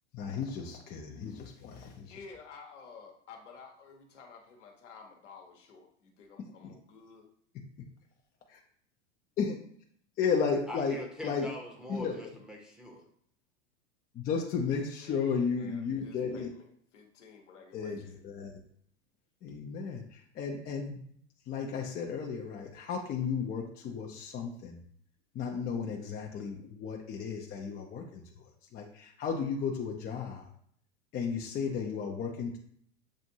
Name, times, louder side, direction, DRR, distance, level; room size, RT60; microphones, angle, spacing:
voice 1, 0.1-2.1 6.6-6.7 9.4-9.6 10.2-11.0 11.2-11.5 11.9-12.2 14.1-16.5 17.7-18.5 19.4-21.0 21.5-24.8 25.3-28.2 28.7-30.5 31.1-32.6, left 6 dB, 25° left, 1 dB, 0.6 m, -34 dB
voice 2, 2.0-7.3 14.7-18.2, left 5 dB, 75° left, 2 dB, 1.1 m, -52 dB
voice 3, 10.7-13.0, left 1 dB, ahead, -2 dB, 0.9 m, -42 dB
7.4 x 2.5 x 2.7 m, 0.64 s
hypercardioid pair, 100°, 37 cm